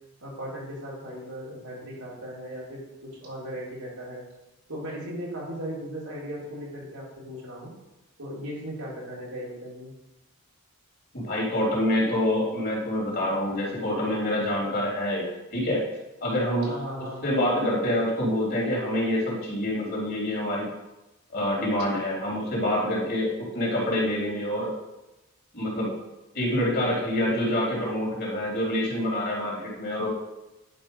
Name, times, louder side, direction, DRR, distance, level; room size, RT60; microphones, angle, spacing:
voice 1, 0.2-4.2 4.7-7.7 8.2-9.9 16.6-17.3, equal, 75° right, -5 dB, 3.8 m, -37 dB
voice 2, 11.1-15.2 15.5-15.8 16.2-16.7 17.2-20.7 21.3-24.7 25.5-25.9 26.3-30.1, left 1 dB, 45° left, -4 dB, 3.3 m, -26 dB
11.0 x 5.2 x 5.4 m, 0.98 s
head